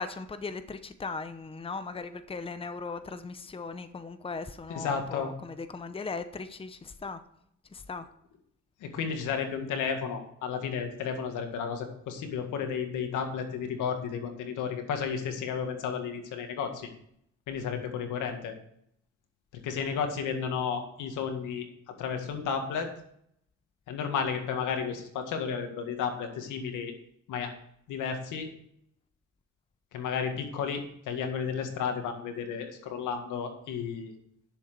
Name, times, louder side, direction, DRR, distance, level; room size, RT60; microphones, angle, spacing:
voice 1, 0.0-7.2 7.7-8.0, left 4 dB, 20° left, 0.8 m, -38 dB
voice 2, 4.7-5.3 8.8-16.9 17.5-18.5 19.6-22.9 23.9-26.9 27.3-27.5 27.9-28.5 29.9-34.1, left 6 dB, 90° left, 1.9 m, -32 dB
10.5 x 7.2 x 5.1 m
cardioid pair, 90°, 30 cm